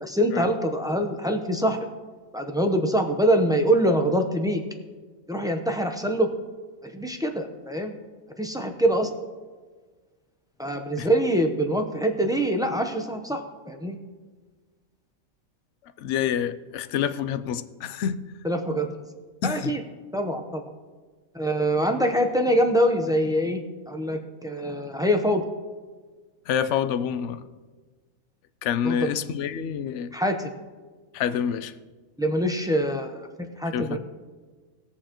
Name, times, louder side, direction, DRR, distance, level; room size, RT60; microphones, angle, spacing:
voice 1, 0.0-1.8 2.3-4.6 5.3-6.3 6.8-7.9 8.4-9.1 10.6-14.0 18.4-18.9 19.4-19.8 20.1-20.6 21.3-25.4 28.8-29.1 30.1-30.5 32.2-34.0, equal, 5° right, 4 dB, 0.5 m, -24 dB
voice 2, 16.0-18.2 19.4-19.7 26.5-27.4 28.6-30.1 31.1-31.7 33.7-34.0, left 8 dB, 65° left, 12 dB, 0.8 m, -27 dB
20.0 x 7.2 x 3.0 m, 1.4 s
omnidirectional pair, 1.4 m